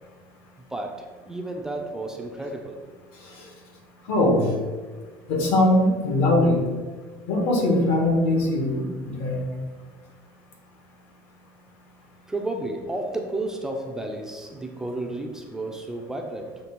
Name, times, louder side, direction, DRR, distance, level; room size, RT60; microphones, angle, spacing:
voice 1, 0.7-2.8 12.3-16.6, right 2 dB, 5° right, 2 dB, 0.4 m, -32 dB
voice 2, 4.1-4.5 5.3-6.6 7.3-9.5, left 1 dB, 70° left, 1 dB, 1.6 m, -21 dB
7.1 x 3.3 x 6.0 m, 1.3 s
cardioid pair, 175°, 8 cm